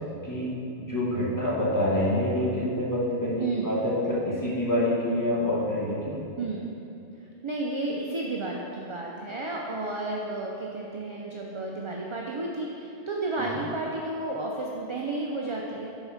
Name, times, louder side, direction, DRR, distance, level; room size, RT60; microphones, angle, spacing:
voice 1, 0.8-6.2, left 1 dB, 15° left, -7 dB, 1.2 m, -26 dB
voice 2, 3.4-3.8 6.4-6.8 7.4-15.9, right 2 dB, 40° right, -2 dB, 0.4 m, -32 dB
5.6 x 4.7 x 5.7 m, 2.7 s
omnidirectional pair, 1.2 m